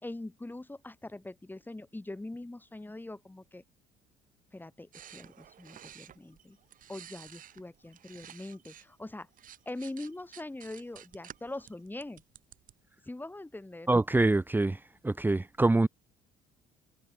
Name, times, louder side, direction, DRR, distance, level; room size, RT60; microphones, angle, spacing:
voice 1, 0.0-3.6 4.5-6.6 6.9-9.3 9.6-12.2 13.0-13.9, left 2 dB, 10° left, 3.2 m, -42 dB
sound 1, 4.9-8.9 9.2-12.7, right 10 dB, 45° right, 5.5 m, -52 dB
voice 2, 13.9-14.8 15.0-15.9, right 2 dB, 10° right, 0.8 m, -25 dB
figure-of-eight pair, 55°, 19 cm